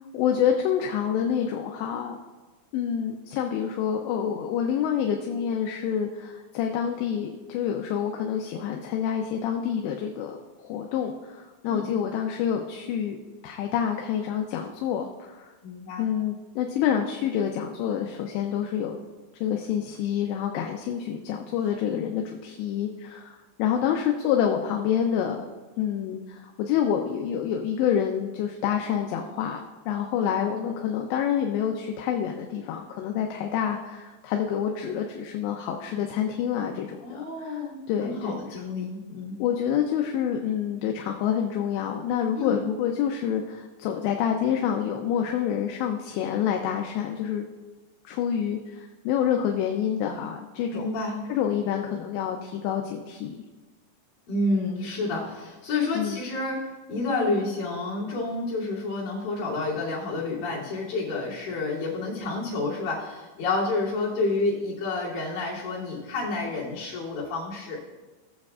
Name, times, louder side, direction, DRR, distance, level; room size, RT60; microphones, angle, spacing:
voice 1, 0.1-2.2 2.7-13.2 13.4-15.5 16.0-19.0 19.4-25.4 25.8-29.6 29.9-37.6 37.9-38.6 39.4-47.5 48.0-50.9 51.3-53.4 55.9-56.2, left 8 dB, 80° left, 3 dB, 2.8 m, -27 dB
voice 2, 15.6-16.0 37.0-39.4 42.3-42.5 50.7-51.2 54.3-56.6 56.9-67.8, left 3 dB, 55° left, -8 dB, 4.3 m, -29 dB
17.0 x 7.5 x 2.4 m, 1.2 s
omnidirectional pair, 5.2 m